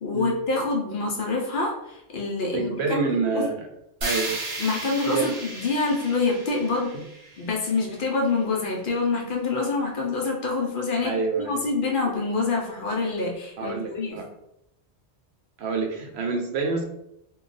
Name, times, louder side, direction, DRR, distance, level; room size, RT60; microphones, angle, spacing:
voice 1, 0.0-3.1 3.3-3.5 4.6-6.9 7.4-14.2, left 3 dB, 60° left, 0 dB, 0.7 m, -26 dB
voice 2, 2.5-3.7 4.0-4.4 5.1-5.4 6.9-7.0 11.0-11.6 13.6-14.3 15.6-16.8, right 4 dB, 75° right, 3 dB, 0.8 m, -27 dB
sound 1, 4.0-8.1, right 2 dB, 35° right, 0.6 m, -34 dB
2.3 x 2.2 x 3.8 m, 0.81 s
omnidirectional pair, 1.1 m